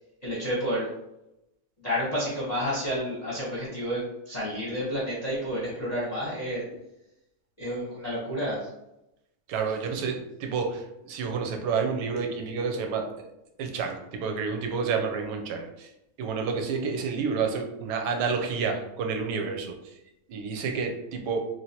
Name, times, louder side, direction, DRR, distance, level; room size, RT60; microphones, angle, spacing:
voice 1, 0.2-0.9 1.8-6.6 7.6-8.7, equal, 30° left, -7 dB, 0.8 m, -30 dB
voice 2, 9.5-13.3 13.6-15.9 16.2-20.0 20.3-21.5, right 5 dB, 90° right, 3 dB, 1.2 m, -29 dB
3.1 x 2.8 x 2.8 m, 0.88 s
omnidirectional pair, 1.8 m